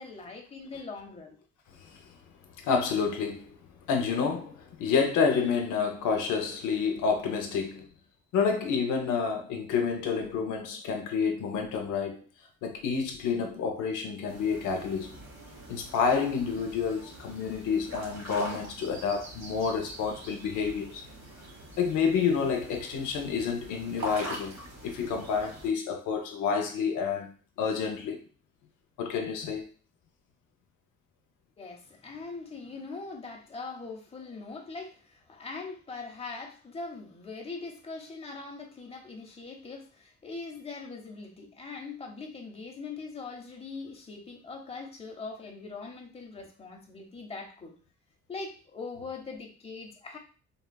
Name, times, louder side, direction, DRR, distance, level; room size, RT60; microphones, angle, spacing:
voice 1, 0.0-1.4 31.6-47.7 48.3-50.2, left 4 dB, 20° left, 0.7 m, -41 dB
voice 2, 1.7-2.1 2.6-3.6 3.8-7.9 8.3-12.2 12.6-15.1 15.7-21.0 21.8-24.5 24.8-27.3 27.6-28.2 29.0-29.7, left 6 dB, 85° left, 0.6 m, -29 dB
sound 1, 14.3-25.7, right 1 dB, 60° right, 1.5 m, -43 dB
3.4 x 2.2 x 2.2 m
cardioid pair, 90°, 30 cm